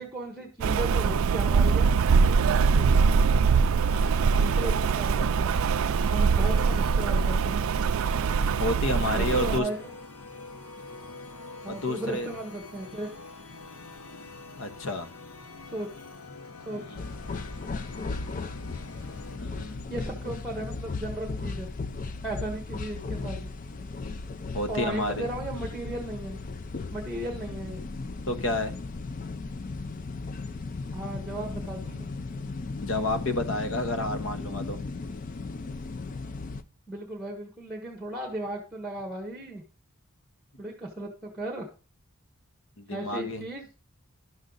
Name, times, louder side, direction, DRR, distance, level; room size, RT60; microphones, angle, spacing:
voice 1, 0.0-1.9 2.7-3.1 4.3-5.6 6.0-7.6 9.1-9.9 11.6-13.1 15.7-16.1 16.6-17.0 19.9-21.7 22.2-23.5 24.7-26.4 26.9-27.8 30.9-32.1 36.9-39.6 40.6-41.7 42.9-43.7, right 1 dB, ahead, 2 dB, 1.1 m, -36 dB
Rain, 0.6-9.6, right 5 dB, 65° right, 0.3 m, -23 dB
sound 1, 3.7-19.4, left 3 dB, 85° left, 0.9 m, -46 dB
voice 2, 8.6-9.7 11.7-12.3 14.6-15.1 16.7-17.0 19.3-19.9 24.5-25.3 28.3-28.7 32.8-34.8 42.8-43.4, left 2 dB, 60° left, 8 dB, 1.0 m, -30 dB
sound 2, 17.0-36.6, left 3 dB, 35° left, 0.4 m, -36 dB
11.0 x 6.4 x 3.9 m, 0.36 s
head